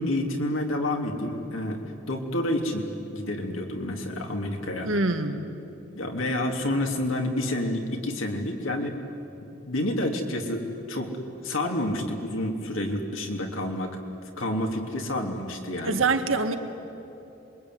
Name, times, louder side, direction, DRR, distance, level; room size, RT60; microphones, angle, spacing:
voice 1, 0.0-1.8 2.1-4.9 5.9-9.0 9.7-11.2 11.4-14.0 14.4-16.0, left 1 dB, 90° left, 2 dB, 3.3 m, -29 dB
voice 2, 4.8-5.5 15.8-16.6, right 3 dB, 90° right, 6 dB, 1.9 m, -24 dB
27.0 x 23.0 x 9.5 m, 3.0 s
head